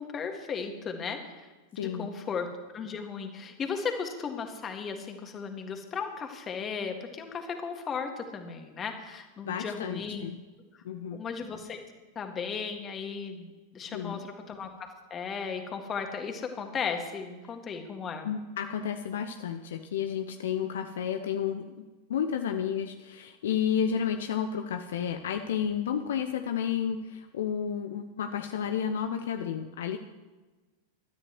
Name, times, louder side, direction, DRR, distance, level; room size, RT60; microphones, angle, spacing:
voice 1, 0.0-2.5 2.7-10.3 11.1-11.8 12.2-18.3, left 6 dB, 25° left, 5 dB, 2.0 m, -36 dB
voice 2, 1.8-2.1 9.4-10.3 10.8-11.2 13.9-14.2 18.2-30.0, left 8 dB, 60° left, 7 dB, 0.7 m, -31 dB
24.5 x 13.0 x 3.2 m, 1.2 s
figure-of-eight pair, 90°, 0 cm